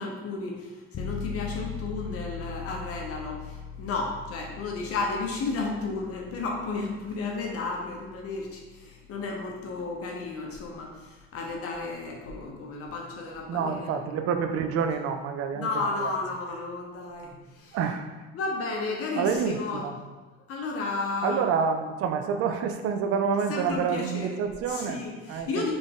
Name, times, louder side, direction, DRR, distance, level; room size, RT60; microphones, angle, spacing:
voice 1, 0.0-14.0 15.5-17.8 18.3-19.9 20.5-21.4 23.5-24.4 24.7-25.7, left 3 dB, 50° left, 0 dB, 0.8 m, -33 dB
sound 1, 0.9-11.5, left 6 dB, 30° left, 0.4 m, -41 dB
voice 2, 13.5-16.1 17.7-18.1 19.2-19.9 21.2-25.0 25.3-25.7, right 6 dB, 50° right, 7 dB, 0.5 m, -28 dB
3.8 x 3.4 x 3.6 m, 1.2 s
supercardioid pair, 100°, 30 cm